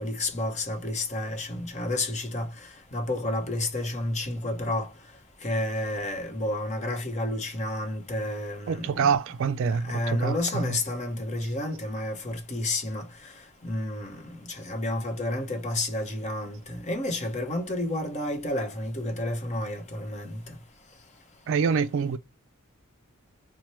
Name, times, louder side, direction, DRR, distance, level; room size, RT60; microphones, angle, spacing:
voice 1, 0.0-2.5 2.9-4.9 5.4-9.1 9.7-13.1 13.6-20.6, left 1 dB, 35° left, 0.9 m, -30 dB
voice 2, 8.7-10.8 21.5-22.2, right 6 dB, 60° right, 0.3 m, -26 dB
4.3 x 2.2 x 2.9 m
head